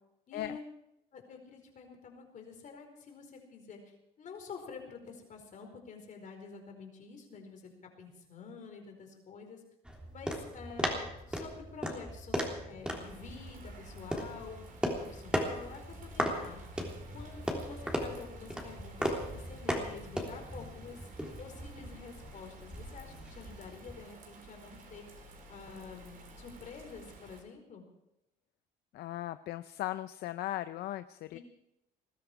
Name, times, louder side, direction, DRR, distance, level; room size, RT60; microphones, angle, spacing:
voice 1, 0.3-0.6 1.1-7.7 8.0-9.6 10.1-11.0 11.3-14.6 15.0-16.6 17.1-21.1 21.4-25.1 25.5-27.9 31.3-31.4, left 5 dB, 50° left, 3 dB, 4.6 m, -48 dB
sound 1, 9.8-24.0, equal, 5° right, 3.3 m, -37 dB
Bird vocalization bird call bird song / Rain, 12.8-27.4, right 2 dB, 55° right, 4.0 m, -53 dB
voice 2, 28.9-31.4, left 14 dB, 75° left, 12 dB, 0.6 m, -38 dB
20.5 x 13.5 x 4.9 m, 0.85 s
cardioid pair, 110°, 17 cm